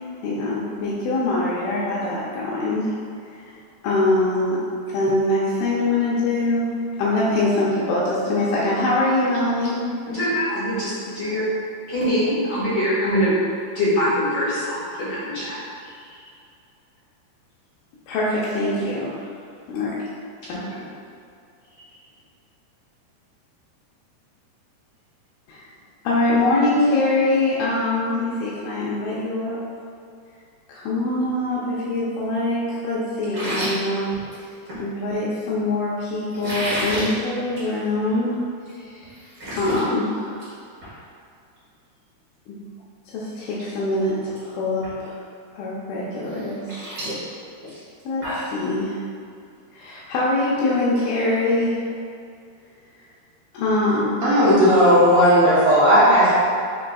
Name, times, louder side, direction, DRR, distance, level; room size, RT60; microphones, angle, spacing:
voice 1, 0.2-2.9 3.3-3.5 3.8-4.6 4.9-6.7 7.0-9.8 18.1-19.2 19.7-20.1 20.5-20.6 25.5-25.7 26.0-29.6 30.7-34.1 34.8-38.4 38.8-39.1 39.5-40.4 42.5-42.6 43.1-45.2 45.6-46.9 48.1-49.0 49.7-51.8 53.5-54.2, left 2 dB, 80° left, -7 dB, 2.1 m, -23 dB
voice 2, 10.1-11.5 11.9-13.3 13.7-15.6 15.8-16.0 20.5-20.8, equal, 55° left, -11 dB, 1.7 m, -23 dB
sound 1, 33.2-34.8 36.3-37.1 37.5-37.7 38.1-38.2 38.7-38.8 39.0-39.8 40.2-40.5 40.8-40.9 42.8-42.9 43.3-43.6 43.9-44.4 44.8-44.9 46.3-48.6, equal, 50° right, 1.6 m, -31 dB
voice 3, 54.2-56.3, equal, 75° right, -11 dB, 1.6 m, -15 dB
5.8 x 3.7 x 2.3 m, 2.4 s
omnidirectional pair, 4.6 m